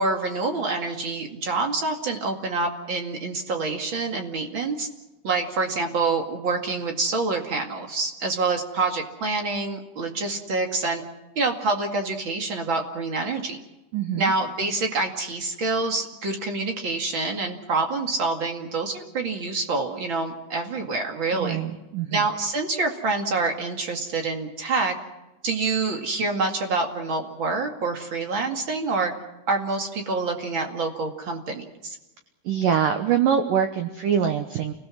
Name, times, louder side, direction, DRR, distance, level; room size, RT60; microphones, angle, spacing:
voice 1, 0.0-4.9 5.2-11.0 11.3-13.6 14.2-21.6 22.1-25.0 25.4-29.1 29.5-32.0, right 3 dB, 45° right, 3 dB, 1.6 m, -26 dB
voice 2, 13.9-14.3 21.3-22.3 32.5-34.7, right 8 dB, 90° right, 7 dB, 1.9 m, -24 dB
29.5 x 19.5 x 6.4 m, 1.0 s
omnidirectional pair, 5.6 m